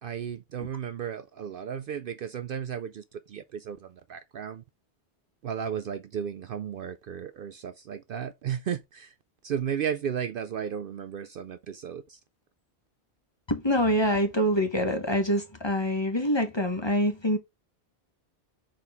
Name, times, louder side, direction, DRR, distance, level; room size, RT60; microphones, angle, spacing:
voice 1, 0.0-4.6 5.4-9.1 9.4-12.2, right 8 dB, 60° right, 0.6 m, -34 dB
voice 2, 13.5-17.4, equal, 25° left, 1.1 m, -25 dB
6.2 x 4.3 x 3.5 m
omnidirectional pair, 1.1 m